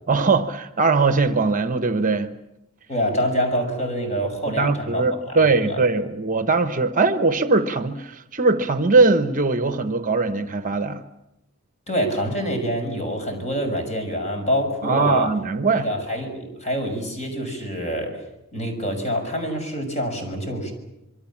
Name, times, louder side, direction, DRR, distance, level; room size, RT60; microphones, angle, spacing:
voice 1, 0.1-2.3 4.5-11.0 14.8-15.9, right 3 dB, 40° right, 10 dB, 1.1 m, -20 dB
voice 2, 2.9-5.8 11.9-15.3 15.8-18.2 18.5-20.7, equal, 35° left, 5 dB, 6.3 m, -26 dB
26.5 x 23.5 x 7.4 m, 0.91 s
head